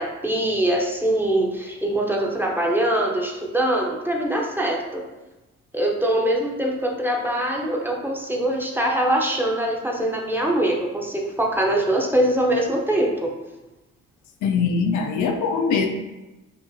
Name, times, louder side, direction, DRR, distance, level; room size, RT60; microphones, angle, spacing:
voice 1, 0.0-5.0 5.7-13.3, right 1 dB, 5° right, -1 dB, 0.6 m, -23 dB
voice 2, 14.4-15.9, left 5 dB, 75° left, 4 dB, 0.6 m, -22 dB
5.6 x 2.4 x 2.7 m, 1.1 s
cardioid pair, 90°, 30 cm